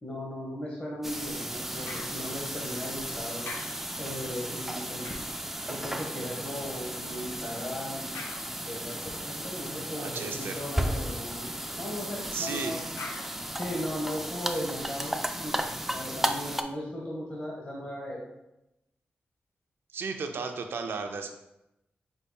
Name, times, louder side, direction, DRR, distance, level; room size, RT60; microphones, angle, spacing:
voice 1, 0.0-3.4 4.0-5.0 5.7-8.0 8.6-9.0 9.2-11.4 11.8-12.8 13.6-18.3, equal, 35° left, -4 dB, 1.1 m, -37 dB
sound 1, 1.0-16.6, right 1 dB, 5° right, 0.3 m, -35 dB
sound 2, 1.9-3.1 3.4-6.3 8.1-9.1 13.0-14.4 15.0-15.1, left 3 dB, 85° left, 0.5 m, -46 dB
voice 2, 10.0-10.7 12.3-12.8 19.9-21.3, right 4 dB, 90° right, 5 dB, 0.4 m, -34 dB
5.4 x 4.0 x 2.3 m, 0.88 s
wide cardioid pair, 90°, 4 cm